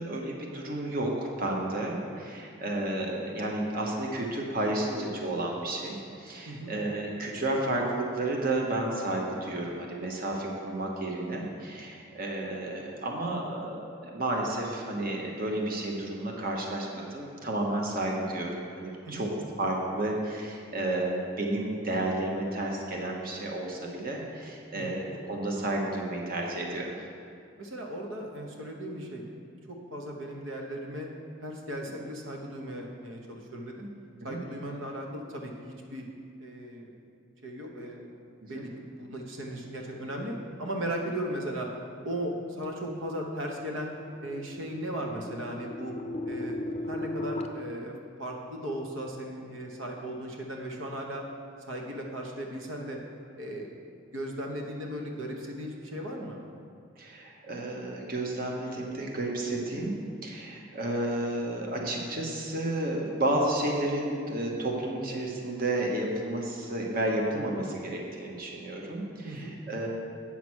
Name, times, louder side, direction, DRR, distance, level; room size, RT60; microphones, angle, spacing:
voice 1, 0.0-19.3 19.6-26.9 31.9-32.0 34.2-34.4 38.4-38.7 57.0-59.9 60.2-69.9, right 1 dB, 45° right, -1 dB, 1.0 m, -31 dB
voice 2, 6.5-6.8 19.0-19.3 24.7-25.0 27.6-29.3 29.7-31.1 31.4-33.9 34.2-36.0 36.4-36.9 37.4-38.1 38.5-41.7 42.0-43.9 44.2-45.9 46.2-46.6 46.9-51.2 51.7-53.0 53.4-53.7 54.1-56.4 69.2-69.5, right 1 dB, 80° right, 1 dB, 1.1 m, -37 dB
sound 1, 42.7-47.5, left 1 dB, 30° left, 0.5 m, -37 dB
8.4 x 5.9 x 6.2 m, 2.3 s
head